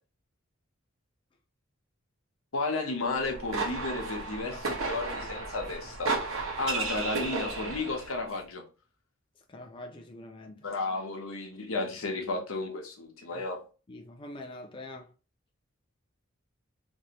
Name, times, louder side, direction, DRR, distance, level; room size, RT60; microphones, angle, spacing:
voice 1, 2.5-6.1 6.6-8.6 10.6-13.6, left 3 dB, 85° left, 0.9 m, -33 dB
sound 1, 3.1-8.2, right 3 dB, 85° right, 1.1 m, -33 dB
voice 2, 9.5-10.6 13.3-13.4 13.9-15.1, left 2 dB, 25° left, 0.4 m, -44 dB
3.1 x 2.7 x 2.9 m
head